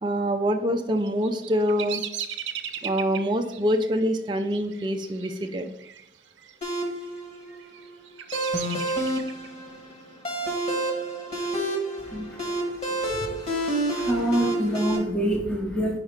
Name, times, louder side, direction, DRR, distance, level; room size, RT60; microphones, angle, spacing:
voice 1, 0.0-2.1 2.8-5.7, equal, 25° right, 3 dB, 0.4 m, -25 dB
Bird vocalization bird call bird song, 1.0-6.1 6.3-6.9 7.5-9.5, right 9 dB, 85° right, 0.6 m, -37 dB
sound 1, 6.6-15.0, right 1 dB, 35° left, 1.4 m, -29 dB
voice 2, 12.0-16.0, right 1 dB, 5° left, -1 dB, 0.8 m, -28 dB
5.3 x 4.8 x 5.1 m, 0.79 s
head